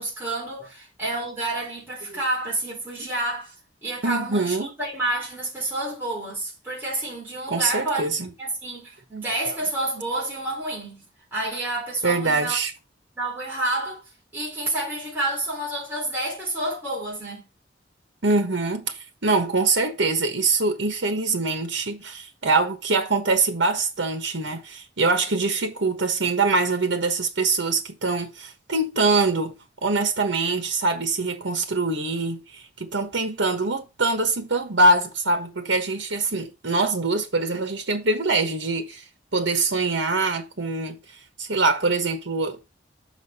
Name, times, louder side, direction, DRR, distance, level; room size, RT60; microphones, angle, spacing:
voice 1, 0.0-3.5 3.8-8.1 8.4-11.0 11.3-12.6 13.2-14.0 14.3-17.5, right 2 dB, 10° right, 3.9 m, -29 dB
voice 2, 4.0-4.7 7.5-8.3 9.5-9.6 12.0-12.7 18.2-39.0 39.3-41.0 41.4-42.8, right 3 dB, 80° right, 1.2 m, -24 dB
6.5 x 5.9 x 4.2 m
head